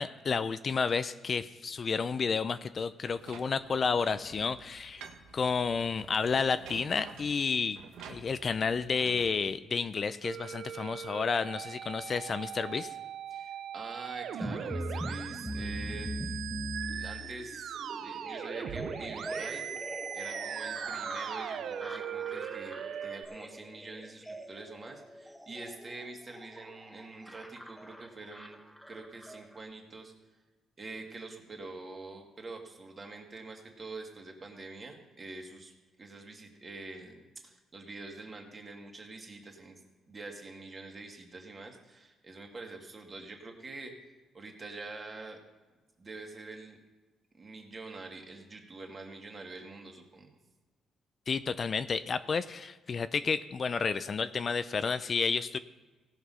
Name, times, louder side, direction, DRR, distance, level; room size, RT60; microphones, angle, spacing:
voice 1, 0.0-5.0 5.3-7.8 8.1-12.9 51.3-55.6, left 5 dB, 45° left, 13 dB, 0.4 m, -31 dB
sound 1, 3.1-9.3, right 6 dB, 90° right, 1.1 m, -50 dB
Musical instrument, 10.2-23.2, right 9 dB, 70° right, 0.5 m, -40 dB
voice 2, 13.3-16.1 17.0-19.6 20.1-28.6 28.9-30.1 30.8-39.8 40.1-43.9 44.3-45.4 46.0-46.8 47.4-50.3, right 3 dB, 35° right, 1 dB, 2.2 m, -45 dB
sound 2, 14.4-29.6, equal, 5° left, 0.9 m, -42 dB
17.5 x 5.9 x 5.6 m, 1.2 s
cardioid pair, 90°, 0 cm